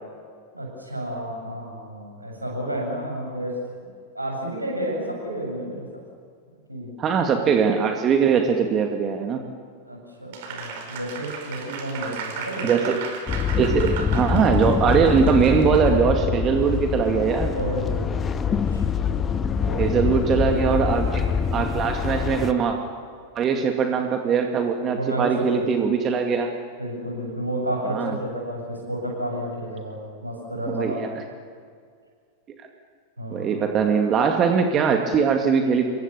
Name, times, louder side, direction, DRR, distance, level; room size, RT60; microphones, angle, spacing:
voice 1, 0.5-3.5 4.1-6.0 6.7-6.9 9.9-12.7 17.5-18.4 18.7-20.0 20.3-20.9 25.0-25.7 26.8-31.0 33.2-33.7, right 1 dB, 85° right, 0 dB, 7.8 m, -31 dB
voice 2, 7.0-9.4 12.6-13.0 13.6-17.5 19.8-21.3 21.5-22.8 23.4-26.5 27.9-28.2 30.7-31.2 33.3-35.9, right 6 dB, 30° right, 4 dB, 2.3 m, -21 dB
Applause, 10.3-15.9, right 5 dB, 50° right, 5.2 m, -35 dB
sound 1, 13.3-22.5, left 6 dB, 20° left, 1.4 m, -24 dB
27.5 x 24.5 x 7.1 m, 2.1 s
figure-of-eight pair, 90°, 0 cm